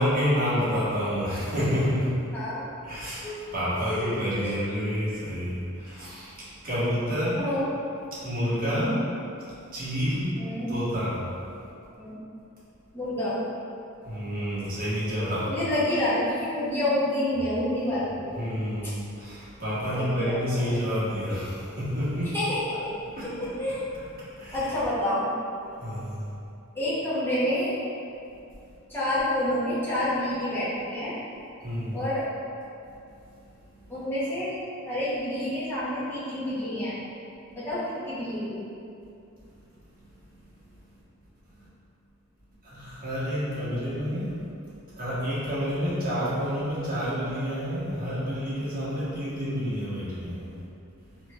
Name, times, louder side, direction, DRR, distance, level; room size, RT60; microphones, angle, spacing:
voice 1, 0.0-2.2 2.8-7.4 8.1-9.0 9.7-10.4 10.7-11.2 14.0-15.6 18.3-22.3 23.1-23.5 24.2-24.7 25.8-26.3 31.6-32.0 32.8-32.9 33.7-33.8 42.6-44.4 45.0-50.5, equal, 40° right, -11 dB, 1.2 m, -29 dB
voice 2, 2.3-2.6 3.2-3.4 3.9-4.1 4.4-4.5 7.4-7.7 8.6-8.9 10.4-10.7 12.0-12.2 12.9-13.4 15.5-18.3 19.9-20.7 22.3-22.9 23.4-23.8 24.5-25.2 26.7-27.7 28.9-31.1 31.9-32.2 33.9-34.5 34.8-36.9 37.5-38.6, left 1 dB, 10° left, -12 dB, 1.0 m, -28 dB
4.3 x 2.7 x 2.4 m, 2.6 s
head